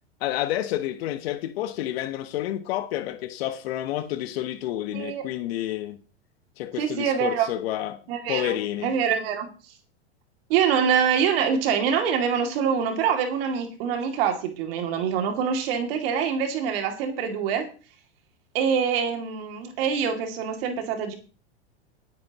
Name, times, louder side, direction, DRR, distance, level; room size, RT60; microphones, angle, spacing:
voice 1, 0.2-6.0 6.6-8.0 8.3-8.9, left 13 dB, 60° left, 1.3 m, -29 dB
voice 2, 4.9-5.2 6.8-7.5 8.1-8.5 8.8-9.5 10.5-17.7 18.5-21.1, right 7 dB, 60° right, 2.7 m, -25 dB
19.0 x 9.4 x 3.0 m
hypercardioid pair, 125°, 34 cm